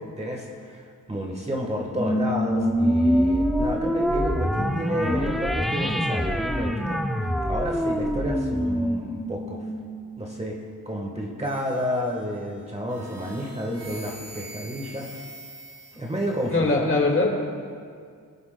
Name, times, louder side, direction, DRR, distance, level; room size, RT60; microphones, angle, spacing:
voice 1, 0.0-7.0 7.5-9.7 10.2-10.5 10.8-15.2 15.9-16.9, equal, 20° right, -1 dB, 1.3 m, -30 dB
sound 1, 2.0-10.7, equal, ahead, 0.5 m, -25 dB
sound 2, 11.4-12.4 12.9-16.5, right 1 dB, 45° right, 2.9 m, -44 dB
voice 2, 16.5-17.5, left 2 dB, 35° left, 0 dB, 1.9 m, -22 dB
21.5 x 8.0 x 2.2 m, 2.1 s
wide cardioid pair, 100°, 34 cm